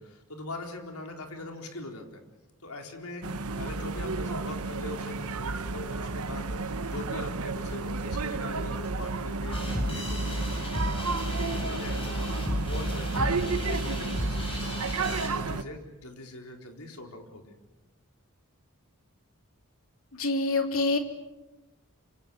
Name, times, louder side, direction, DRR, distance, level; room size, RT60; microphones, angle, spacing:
voice 1, 0.0-2.2 2.6-11.4 11.7-14.8 15.1-17.5, left 2 dB, 85° left, 3 dB, 4.3 m, -42 dB
sound 1, 3.2-15.6, right 3 dB, 85° right, 1.1 m, -32 dB
sound 2, 9.5-15.3, equal, 25° left, 6.9 m, -33 dB
voice 2, 20.1-21.0, left 3 dB, 65° left, 5 dB, 3.2 m, -26 dB
26.5 x 26.5 x 7.1 m, 1.1 s
head